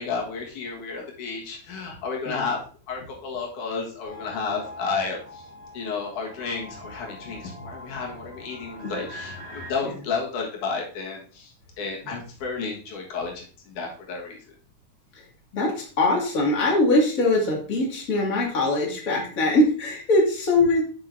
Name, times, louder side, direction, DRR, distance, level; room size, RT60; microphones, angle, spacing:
voice 1, 0.0-2.6 2.9-5.5 5.7-14.4, left 4 dB, 85° left, -1 dB, 3.1 m, -32 dB
sound 1, 4.0-9.7, left 1 dB, 25° right, 1.9 m, -42 dB
voice 2, 15.5-20.8, left 2 dB, 30° left, -2 dB, 2.2 m, -22 dB
7.7 x 7.4 x 2.6 m, 0.39 s
omnidirectional pair, 3.5 m